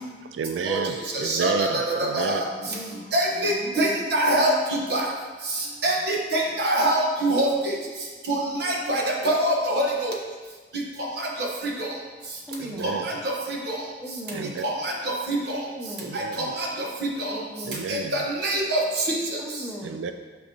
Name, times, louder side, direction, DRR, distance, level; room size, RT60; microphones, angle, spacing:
voice 1, 0.3-2.4 12.5-13.1 14.3-14.6 16.0-16.6 17.6-18.3 19.8-20.1, right 5 dB, 90° right, 8 dB, 0.3 m, -31 dB
voice 2, 1.1-2.5 3.1-5.1 5.5-7.8 8.3-10.1 11.0-11.9 12.8-13.8 14.6-15.7 16.1-17.4 17.9-19.4, right 1 dB, 65° right, -1 dB, 1.2 m, -25 dB
voice 3, 2.4-3.1 3.3-3.9 12.5-12.9 14.0-14.6 15.8-16.2 17.3-17.9 19.4-20.0, equal, 5° left, -2 dB, 0.7 m, -38 dB
8.7 x 5.3 x 2.9 m, 1.4 s
head